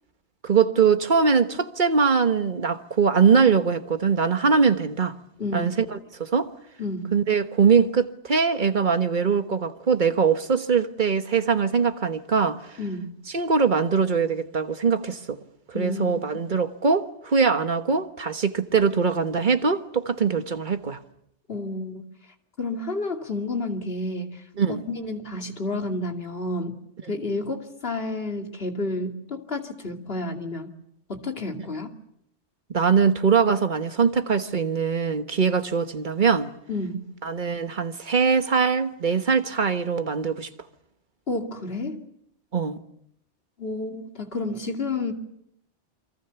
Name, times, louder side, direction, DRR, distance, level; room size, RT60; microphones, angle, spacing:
voice 1, 0.4-5.1 5.5-6.5 7.1-12.7 13.3-15.4 15.7-21.0 24.6-24.8 27.1-27.2 32.7-36.5 37.2-40.5 42.5-42.8, right 5 dB, 45° right, 1.4 m, -22 dB
voice 2, 5.4-5.8 6.8-7.1 12.8-13.1 15.7-16.2 21.5-22.0 22.6-24.4 24.9-26.8 27.1-30.7 31.1-31.9 36.7-37.0 41.3-42.0 43.6-45.1, left 2 dB, 55° left, 2.8 m, -30 dB
28.5 x 23.5 x 7.0 m
omnidirectional pair, 1.2 m